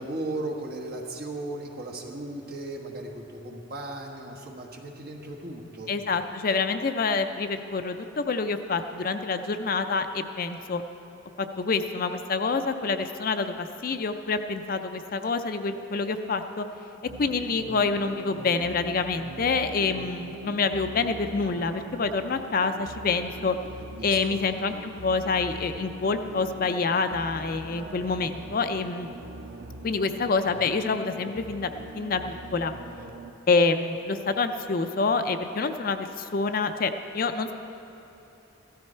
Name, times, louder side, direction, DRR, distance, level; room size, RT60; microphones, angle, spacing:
voice 1, 0.0-5.9 24.0-24.4, right 2 dB, 50° right, 0 dB, 1.4 m, -36 dB
voice 2, 5.9-10.8 11.4-16.7 17.2-23.6 24.0-29.1 29.8-31.7 31.9-32.7 33.5-37.5, left 4 dB, 45° left, 8 dB, 0.4 m, -27 dB
sound 1, 17.0-33.3, right 3 dB, 80° right, 0.6 m, -42 dB
15.5 x 13.0 x 4.4 m, 3.0 s
head